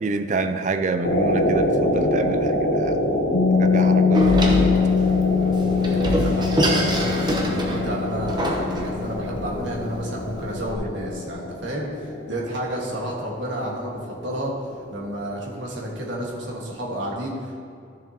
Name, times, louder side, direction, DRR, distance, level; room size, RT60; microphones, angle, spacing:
voice 1, 0.0-3.0 3.5-4.7, right 3 dB, 40° right, 9 dB, 0.4 m, -27 dB
sound 1, 1.0-16.3 16.6-16.7, left 1 dB, 50° left, 0.8 m, -27 dB
Piano, 3.3-10.6, left 6 dB, 75° left, 0.5 m, -23 dB
Door, 4.1-10.7, right 1 dB, 20° right, 0.9 m, -26 dB
voice 2, 5.8-14.5 14.9-17.6, right 1 dB, 65° right, -3 dB, 1.6 m, -31 dB
12.5 x 7.1 x 2.9 m, 2.3 s
head